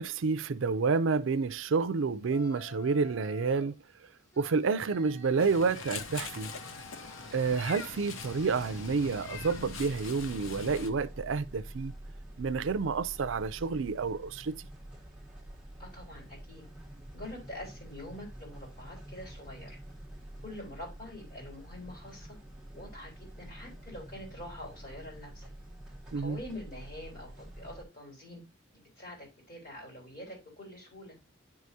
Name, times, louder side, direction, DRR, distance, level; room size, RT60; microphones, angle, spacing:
voice 1, 0.0-3.7 4.4-6.5 7.3-11.9 12.4-14.7 26.1-26.4, right 4 dB, 75° right, 0.5 m, -29 dB
Yell, 2.2-3.8 4.3-11.0, left 2 dB, 15° left, 1.3 m, -54 dB
Meow, 5.4-10.9, left 5 dB, 85° left, 0.7 m, -42 dB
sound 1, 9.3-27.8, right 1 dB, 5° right, 1.1 m, -47 dB
voice 2, 15.8-16.6 17.1-19.8 20.4-22.4 22.7-23.1 23.4-25.5 26.2-28.4 29.0-31.2, left 1 dB, 45° left, 3.8 m, -45 dB
9.8 x 4.8 x 2.7 m
head